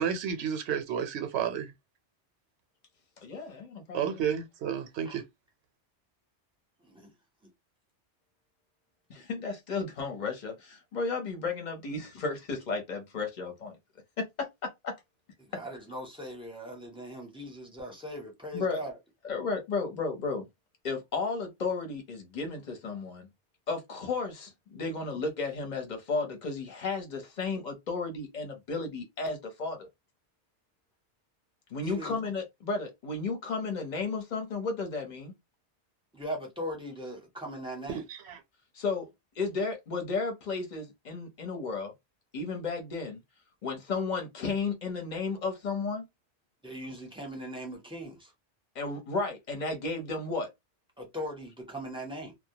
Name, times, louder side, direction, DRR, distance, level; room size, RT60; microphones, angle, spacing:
voice 1, 0.0-1.7 3.9-5.2 38.1-38.4, right 8 dB, 70° right, 0.9 m, -31 dB
voice 2, 3.2-4.2 9.1-13.8 14.2-14.5 14.8-14.9 18.5-18.8 19.2-20.5 20.8-23.3 23.7-29.9 31.7-35.3 38.7-39.1 39.4-41.9 42.3-43.2 43.6-46.0 48.7-50.5, left 4 dB, 45° left, 0.9 m, -33 dB
voice 3, 15.4-18.9 31.8-32.2 36.1-38.0 46.6-48.3 51.0-52.3, equal, 5° right, 0.7 m, -39 dB
2.2 x 2.1 x 2.7 m
omnidirectional pair, 1.2 m